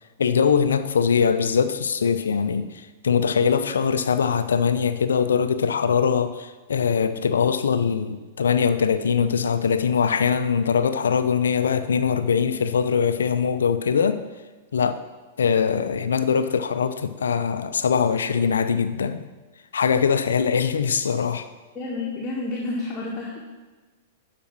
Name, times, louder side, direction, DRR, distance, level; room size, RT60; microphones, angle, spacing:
voice 1, 0.2-14.2 14.7-15.0 15.4-19.2 19.7-21.5, left 6 dB, 75° left, 11 dB, 0.7 m, -22 dB
voice 2, 21.7-23.4, left 2 dB, 25° left, -4 dB, 2.0 m, -30 dB
12.0 x 5.1 x 6.1 m, 1.3 s
figure-of-eight pair, 105°, 0 cm